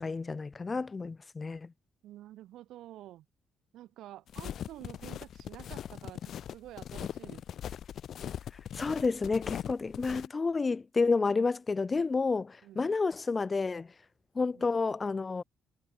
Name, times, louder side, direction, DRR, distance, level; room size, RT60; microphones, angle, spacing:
voice 1, 0.0-1.7 8.7-13.9 14.4-15.4, left 4 dB, 30° left, 0.3 m, -30 dB
voice 2, 2.0-3.2 3.7-7.4 12.6-12.8 14.5-14.6, right 14 dB, 85° right, 3.4 m, -49 dB
sound 1, 4.3-10.3, left 10 dB, 65° left, 2.0 m, -40 dB
cardioid pair, 90°, 0 cm